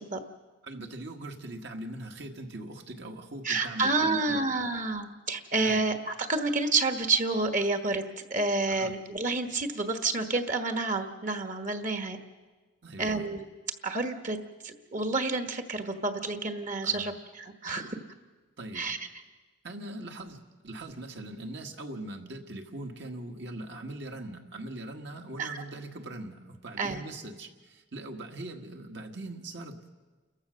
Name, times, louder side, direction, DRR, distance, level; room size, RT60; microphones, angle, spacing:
voice 1, 0.6-4.4 5.6-5.8 8.7-8.9 12.8-13.2 16.8-17.1 18.6-18.9 19.6-29.8, right 1 dB, 60° right, 3 dB, 1.6 m, -41 dB
voice 2, 3.4-8.0 8.3-12.2 13.0-13.4 13.8-14.4 14.6-17.9 18.7-19.0 25.4-25.6 26.8-27.0, right 3 dB, 40° right, 7 dB, 1.4 m, -29 dB
29.0 x 14.5 x 6.4 m, 1.3 s
head